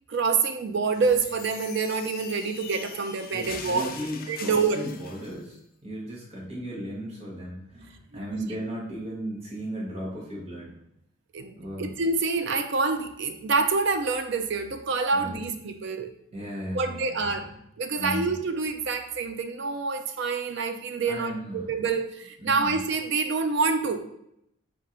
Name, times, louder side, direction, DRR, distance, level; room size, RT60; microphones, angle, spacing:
voice 1, 0.1-3.9 4.3-4.9 8.3-8.5 11.3-11.5 11.8-16.4 16.7-17.5 17.8-24.1, right 4 dB, 60° right, 7 dB, 0.4 m, -27 dB
sound 1, 0.9-5.4, left 6 dB, 45° left, 0.4 m, -42 dB
voice 2, 3.3-10.7 11.6-12.0 15.2-15.4 16.3-17.2 18.0-18.3 21.0-21.7 22.4-22.8, equal, 30° right, -5 dB, 1.0 m, -36 dB
3.7 x 2.5 x 4.3 m, 0.77 s
head